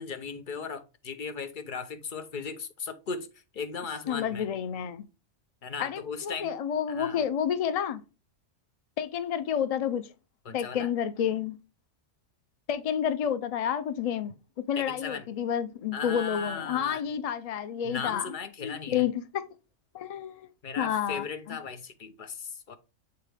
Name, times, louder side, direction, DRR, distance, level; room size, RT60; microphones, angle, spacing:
voice 1, 0.0-3.3 3.5-4.5 5.6-6.6 6.9-7.2 10.4-10.9 14.8-15.3 15.9-17.0 17.8-19.0 20.6-22.8, left 5 dB, 50° left, 0.8 m, -37 dB
voice 2, 4.1-5.1 5.8-8.0 9.0-10.1 10.5-11.6 12.7-18.3 18.6-19.2 19.9-20.5 20.8-21.6, left 9 dB, 80° left, 0.3 m, -30 dB
7.8 x 4.0 x 3.3 m
omnidirectional pair, 1.2 m